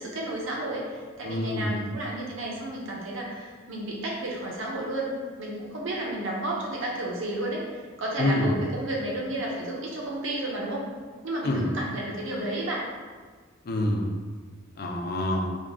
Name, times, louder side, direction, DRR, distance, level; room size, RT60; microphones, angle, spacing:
voice 1, 0.0-10.9 11.2-12.8, right 1 dB, 70° right, -3 dB, 0.8 m, -32 dB
voice 2, 1.2-1.8 8.2-8.6 11.4-11.7 13.6-14.1 14.8-15.5, left 1 dB, 50° left, 1 dB, 0.5 m, -26 dB
3.7 x 2.3 x 3.5 m, 1.5 s
head